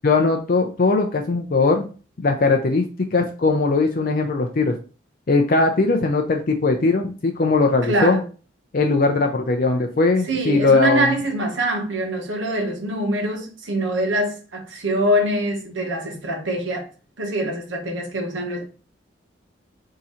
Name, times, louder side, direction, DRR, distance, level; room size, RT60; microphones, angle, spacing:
voice 1, 0.0-1.8 2.2-2.8 3.1-4.7 5.3-8.2 8.7-11.1, left 3 dB, 50° left, 0.5 m, -19 dB
voice 2, 7.8-8.2 10.2-16.9 17.2-18.6, right 1 dB, 85° right, 1.1 m, -24 dB
3.7 x 2.8 x 4.2 m
head